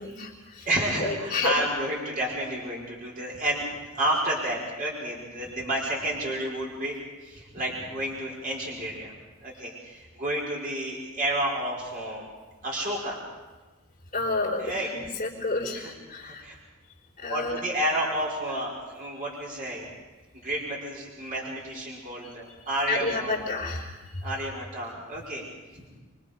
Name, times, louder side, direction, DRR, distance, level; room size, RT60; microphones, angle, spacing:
voice 1, 0.0-0.7 1.0-1.6 14.1-16.5 17.2-17.6 22.2-22.3 22.9-24.3, left 3 dB, 35° left, -6 dB, 3.9 m, -30 dB
voice 2, 0.6-7.0 7.2-9.1 9.4-12.3 12.6-13.2 14.6-14.9 15.8-15.9 16.2-16.5 17.3-19.9 20.4-23.4 24.2-25.4 25.7-26.0, right 1 dB, 45° right, -3 dB, 5.5 m, -30 dB
27.5 x 24.0 x 5.3 m, 1.2 s
head